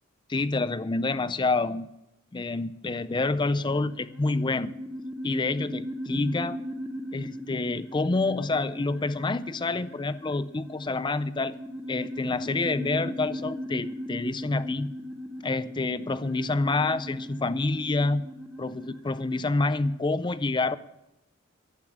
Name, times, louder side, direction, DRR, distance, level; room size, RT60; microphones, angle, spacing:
voice 1, 0.3-1.9 2.3-4.7 5.2-6.6 7.1-11.6 11.9-14.9 15.4-18.2 18.6-20.8, left 3 dB, 20° left, 15 dB, 0.4 m, -28 dB
sound 1, 3.6-19.9, equal, 5° right, 1.0 m, -38 dB
12.0 x 8.3 x 8.6 m, 0.90 s
head